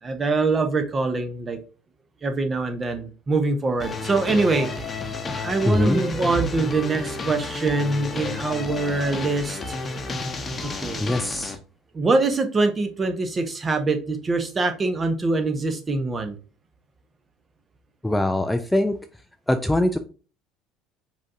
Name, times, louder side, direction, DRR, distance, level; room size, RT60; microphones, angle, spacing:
voice 1, 0.0-1.6 2.2-4.9 5.3-9.8 10.6-11.0 11.9-16.4, right 3 dB, 25° right, 7 dB, 1.0 m, -24 dB
sound 1, 3.8-11.6, left 3 dB, 25° left, 0.9 m, -31 dB
voice 2, 5.6-6.0 11.0-11.6 18.0-19.0 19.5-20.0, left 1 dB, 5° left, 8 dB, 0.4 m, -22 dB
5.0 x 3.7 x 2.7 m, 0.36 s
figure-of-eight pair, 65°, 0 cm